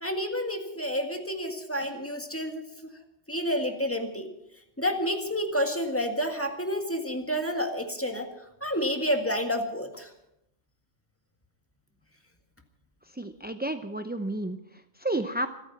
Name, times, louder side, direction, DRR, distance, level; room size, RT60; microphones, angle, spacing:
voice 1, 0.0-2.6 3.3-4.3 4.8-8.3 8.6-10.1, equal, 10° left, 4 dB, 1.8 m, -29 dB
voice 2, 13.1-15.5, right 1 dB, 15° right, 8 dB, 0.3 m, -32 dB
26.5 x 9.0 x 5.8 m, 0.84 s
omnidirectional pair, 1.3 m